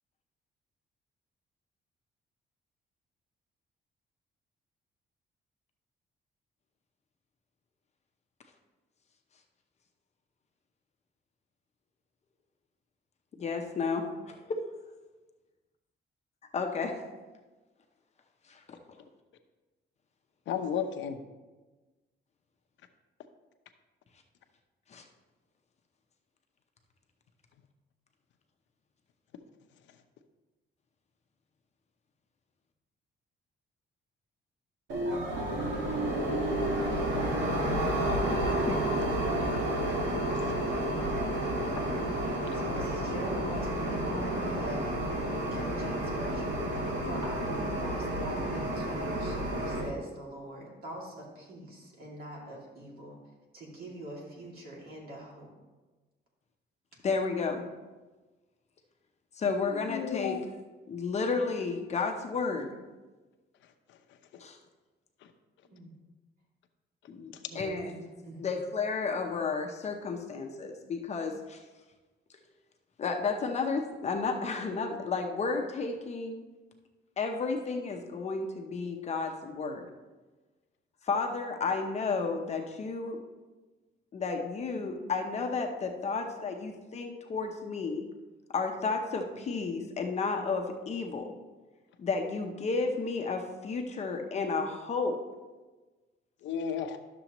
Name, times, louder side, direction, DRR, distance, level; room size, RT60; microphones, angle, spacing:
voice 1, 13.4-14.6 16.5-17.0 18.5-18.6 24.9-25.0 38.7-38.8 57.0-57.7 59.4-60.4 60.9-62.8 64.4-64.6 67.1-67.9 68.4-71.6 73.0-76.4 77.2-79.9 81.0-83.2 84.1-88.1 88.5-91.3 92.0-95.2, left 4 dB, 35° left, 4 dB, 0.7 m, -32 dB
voice 2, 20.5-21.2 39.8-39.9 40.3-40.6 42.4-42.6 59.8-60.4 96.4-97.0, left 7 dB, 80° left, 7 dB, 0.7 m, -34 dB
sound 1, 34.9-49.9, right 1 dB, 80° right, 1.4 m, -30 dB
voice 3, 36.8-38.1 42.2-53.2 53.5-55.5 65.7-66.0 67.5-68.5, right 1 dB, 50° right, -2 dB, 2.4 m, -44 dB
11.5 x 6.9 x 3.0 m, 1.2 s
cardioid pair, 165°, 19 cm